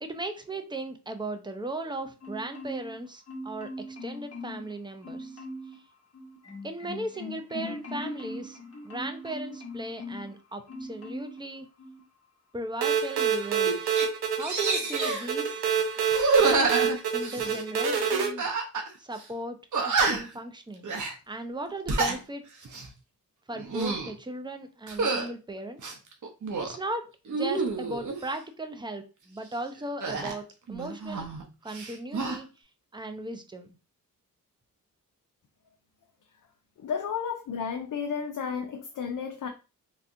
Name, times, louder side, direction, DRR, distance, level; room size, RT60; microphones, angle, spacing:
voice 1, 0.0-5.4 6.6-8.6 8.8-11.7 12.5-13.8 14.3-15.6 17.1-18.5 19.0-20.9 21.3-22.4 23.5-25.8 26.6-27.0 27.3-31.3 31.6-32.5 32.9-33.7, right 1 dB, 10° right, 0.5 m, -37 dB
Marimba xylophone, 2.2-3.0 3.3-4.7 5.0-5.8 6.1-10.3 10.7-11.4 11.8-12.0, left 1 dB, 40° left, 1.2 m, -40 dB
sound 1, 12.8-18.3, right 7 dB, 90° right, 0.8 m, -27 dB
sound 2, 13.2-13.3 13.6-14.1 14.4-15.3 16.1-17.6 18.4-18.9 19.2-19.3 19.7-20.4 20.8-21.1 21.7-22.2 22.6-22.9 23.5-24.1 24.9-25.3 25.8-26.8 27.3-28.2 30.0-31.4 31.7-32.4, right 4 dB, 55° right, 0.9 m, -28 dB
voice 2, 36.8-39.5, left 6 dB, 55° left, 0.5 m, -32 dB
3.3 x 2.8 x 2.5 m
cardioid pair, 65°, 37 cm